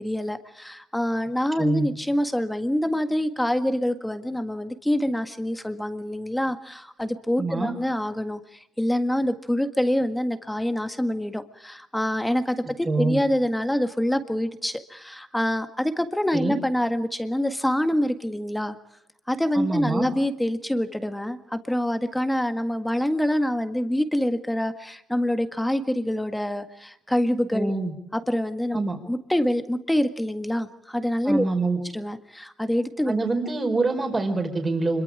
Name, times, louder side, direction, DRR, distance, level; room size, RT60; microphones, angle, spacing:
voice 1, 0.0-18.8 19.3-27.7 28.1-28.8 29.1-31.4 31.9-33.1, left 1 dB, 5° left, 9 dB, 1.8 m, -26 dB
voice 2, 7.4-7.7 12.8-13.2 16.3-16.6 19.5-20.1 27.5-27.9 28.7-29.0 31.2-31.8 33.1-35.0, right 3 dB, 25° right, 5 dB, 4.6 m, -25 dB
25.5 x 23.0 x 4.9 m, 0.78 s
cardioid pair, 90°, 0 cm